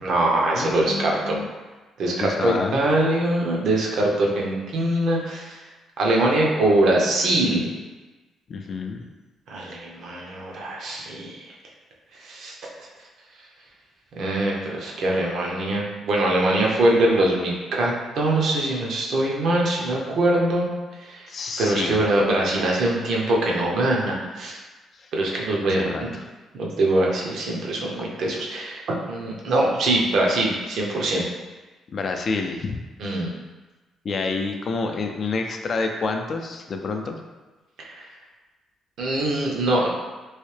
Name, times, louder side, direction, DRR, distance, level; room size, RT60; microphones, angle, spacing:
voice 1, 0.0-1.4 2.0-5.6 6.0-7.7 9.5-11.5 12.2-12.5 14.2-20.7 21.1-21.3 21.6-24.6 25.1-26.1 26.5-31.2 33.0-33.3 37.8-38.1 39.0-39.9, right 1 dB, 70° right, -2 dB, 0.7 m, -23 dB
voice 2, 0.5-1.5 2.2-2.8 8.5-9.0 21.3-22.1 25.0-25.1 25.6-26.2 31.9-32.8 34.0-37.2, left 4 dB, 50° left, 4 dB, 0.3 m, -28 dB
3.2 x 2.7 x 3.2 m, 1.2 s
cardioid pair, 90°, 0 cm